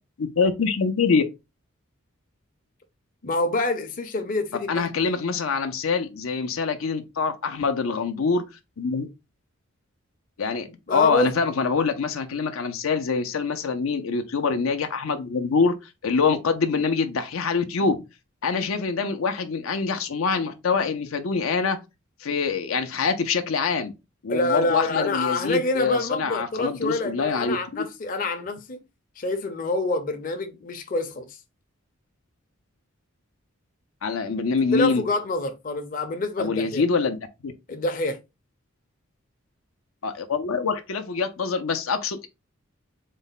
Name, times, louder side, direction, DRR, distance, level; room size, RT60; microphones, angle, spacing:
voice 1, 0.2-1.2 4.7-8.4 8.8-9.1 10.4-15.7 16.0-18.0 18.4-21.8 22.2-23.9 24.2-27.9 34.0-35.0 36.4-37.5 40.0-42.3, left 5 dB, 85° left, 0.6 m, -25 dB
voice 2, 3.2-4.8 10.9-11.3 24.3-28.8 29.2-31.4 34.7-36.8 37.7-38.2, left 2 dB, 40° left, 0.6 m, -26 dB
4.1 x 2.1 x 4.0 m
head